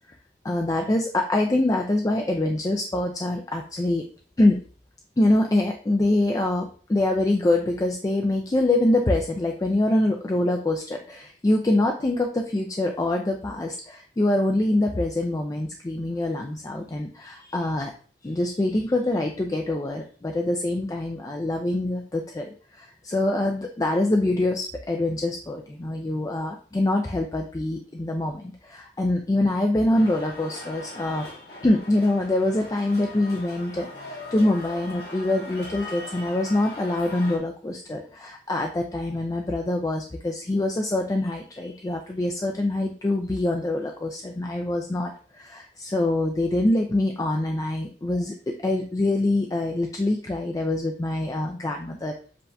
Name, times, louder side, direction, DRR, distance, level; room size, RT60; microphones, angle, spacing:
voice 1, 0.4-4.1 4.4-4.6 5.2-17.9 18.2-52.1, left 1 dB, 20° left, 2 dB, 0.3 m, -25 dB
sound 1, 29.9-37.4, left 2 dB, 65° left, 1.5 m, -40 dB
7.5 x 2.8 x 2.2 m, 0.43 s
head